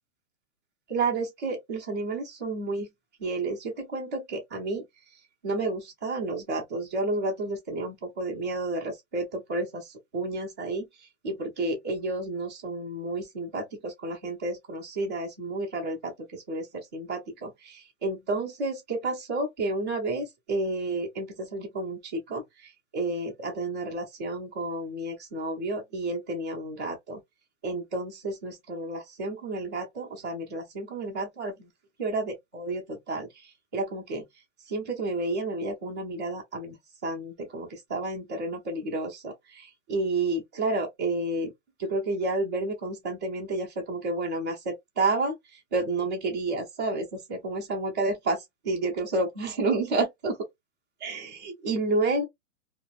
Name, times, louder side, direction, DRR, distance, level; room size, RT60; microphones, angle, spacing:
voice 1, 0.9-2.9 3.2-4.8 5.4-10.9 11.2-27.2 27.6-31.7 32.0-34.3 34.7-36.8 37.0-41.5 41.8-50.4 51.0-52.2, right 2 dB, 15° right, 0.3 m, -31 dB
2.4 x 2.1 x 3.4 m
hypercardioid pair, 150°, 39 cm